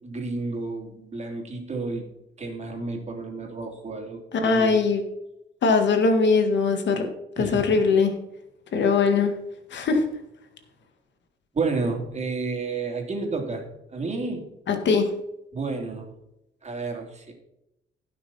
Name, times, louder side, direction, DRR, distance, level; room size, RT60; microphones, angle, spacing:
voice 1, 0.0-2.1 2.4-4.9 7.4-7.6 11.5-14.5 15.5-16.1 16.6-17.3, right 3 dB, 35° right, 2 dB, 3.2 m, -31 dB
voice 2, 4.3-5.0 5.6-7.1 7.4-8.1 8.7-9.4 9.7-10.1 14.7-15.1, left 4 dB, 65° left, 6 dB, 1.9 m, -21 dB
16.0 x 6.2 x 4.3 m, 0.85 s
cardioid pair, 90°, 20 cm